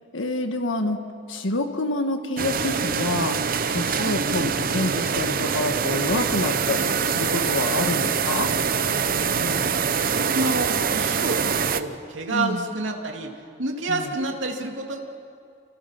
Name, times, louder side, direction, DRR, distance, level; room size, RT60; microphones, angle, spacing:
voice 1, 0.1-1.0 1.3-3.4 3.7-8.5 12.3-12.6 13.9-14.1, left 2 dB, 80° left, 6 dB, 1.5 m, -27 dB
sound 1, 2.4-11.8, right 6 dB, 45° right, 0.8 m, -24 dB
voice 2, 9.1-9.7 10.0-13.3 13.6-15.0, right 2 dB, 75° right, 2 dB, 2.7 m, -29 dB
29.0 x 28.5 x 5.8 m, 2.4 s
head